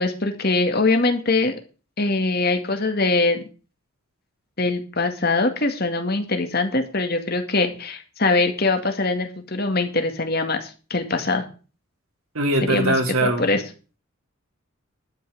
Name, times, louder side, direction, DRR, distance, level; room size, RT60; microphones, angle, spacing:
voice 1, 0.0-1.5 2.0-3.4 4.6-11.5 12.6-13.0 13.2-13.6, left 3 dB, 45° left, 6 dB, 2.1 m, -22 dB
voice 2, 12.3-13.5, right 1 dB, 80° right, 5 dB, 2.8 m, -21 dB
12.0 x 5.8 x 8.2 m, 0.36 s
head